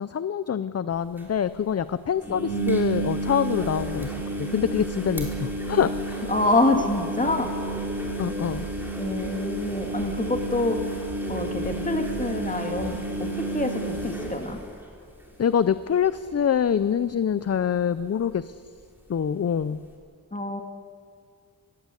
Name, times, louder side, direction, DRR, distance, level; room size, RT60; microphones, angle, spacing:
voice 1, 0.0-4.1 4.4-6.3 8.2-8.7 15.4-18.5 19.1-19.8, left 8 dB, 40° left, 14 dB, 0.5 m, -25 dB
sound 1, 0.9-1.0 1.2-1.3 2.2-15.3 15.6-16.1 16.3-16.4 18.3-18.4, right 2 dB, 5° right, 4.1 m, -31 dB
voice 2, 6.3-7.5 9.0-10.8 11.3-14.6 20.3-20.6, left 2 dB, 20° left, 3 dB, 2.2 m, -26 dB
20.5 x 16.5 x 8.3 m, 2.1 s
wide cardioid pair, 130°, 37 cm